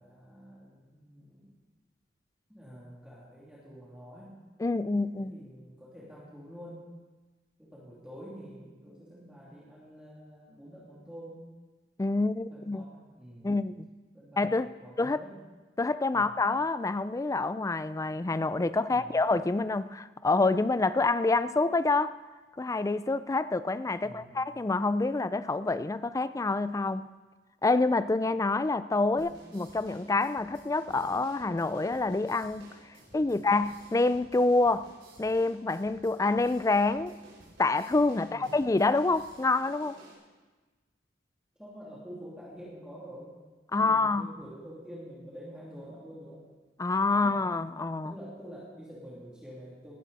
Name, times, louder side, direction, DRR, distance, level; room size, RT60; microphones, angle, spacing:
voice 1, 0.0-1.6 2.5-4.4 5.1-6.9 7.6-11.5 12.5-13.5 14.1-15.4 16.1-16.4 18.9-19.2 24.0-24.4 29.1-29.3 33.3-33.5 38.2-38.6 41.6-43.3 43.8-46.4 48.0-49.9, equal, 5° right, -7 dB, 2.8 m, -47 dB
voice 2, 4.6-5.3 12.0-12.8 13.4-13.9 14.4-14.7 15.0-15.2 15.8-22.1 22.6-27.1 27.6-32.7 33.1-34.9 35.2-37.2 37.6-40.0 43.7-44.3 46.8-48.1, left 3 dB, 20° left, 15 dB, 0.4 m, -27 dB
sound 1, 29.2-40.1, right 1 dB, 65° right, 4.9 m, -54 dB
18.5 x 11.5 x 4.1 m, 1.3 s
head